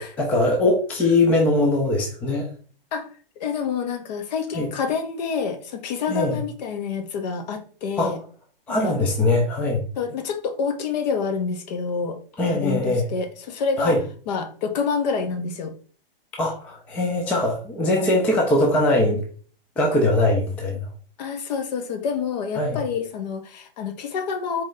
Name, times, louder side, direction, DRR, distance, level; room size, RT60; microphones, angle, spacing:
voice 1, 0.0-2.5 4.5-4.7 6.1-6.4 8.0-8.1 8.7-9.8 12.4-13.1 13.8-14.0 16.4-19.2 19.8-20.9 22.6-22.8, left 2 dB, 5° left, 0.3 m, -21 dB
voice 2, 3.4-8.2 8.7-9.0 10.0-12.2 12.5-14.0 14.3-15.7 21.2-24.6, left 5 dB, 45° left, 1.0 m, -27 dB
4.3 x 3.0 x 3.7 m
hypercardioid pair, 140°, 29 cm